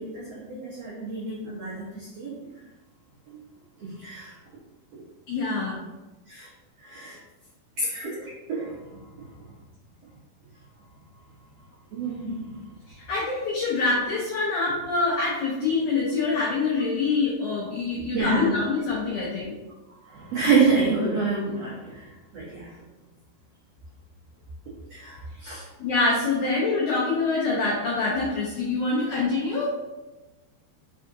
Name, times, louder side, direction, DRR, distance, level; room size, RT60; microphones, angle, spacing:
voice 1, 0.0-2.4 3.8-4.3 6.3-6.5 6.8-7.2 7.8-8.7 11.9-12.5 18.1-18.6 20.1-22.1 22.3-22.7 24.9-25.6, right 4 dB, 85° right, -8 dB, 1.4 m, -27 dB
voice 2, 5.3-5.8 13.1-19.5 25.8-29.7, left 3 dB, 90° left, -5 dB, 1.6 m, -25 dB
5.6 x 3.6 x 2.6 m, 1.1 s
omnidirectional pair, 4.5 m